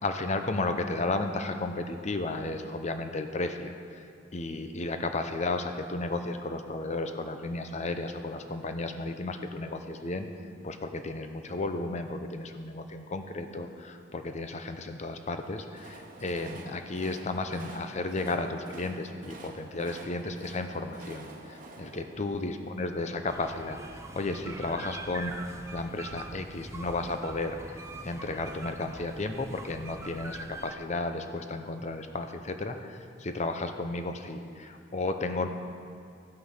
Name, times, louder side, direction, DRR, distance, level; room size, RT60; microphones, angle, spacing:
voice 1, 0.0-10.3 10.6-35.5, left 2 dB, 35° left, 7 dB, 0.7 m, -33 dB
Train, 15.3-23.4, right 2 dB, 45° right, 1.1 m, -49 dB
sound 1, 23.3-30.7, right 2 dB, 15° right, 0.6 m, -43 dB
14.5 x 5.8 x 6.6 m, 2.3 s
head